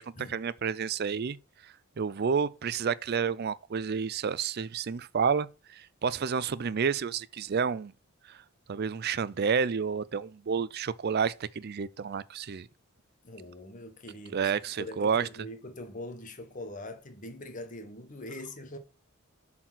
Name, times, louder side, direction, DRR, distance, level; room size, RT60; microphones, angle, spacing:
voice 1, 0.3-1.4 1.6-7.9 8.3-8.4 8.7-12.7 14.3-15.3, right 6 dB, 50° right, 0.4 m, -30 dB
voice 2, 13.2-14.5 14.8-18.8, left 1 dB, 35° left, 1.3 m, -42 dB
7.9 x 4.4 x 6.1 m
head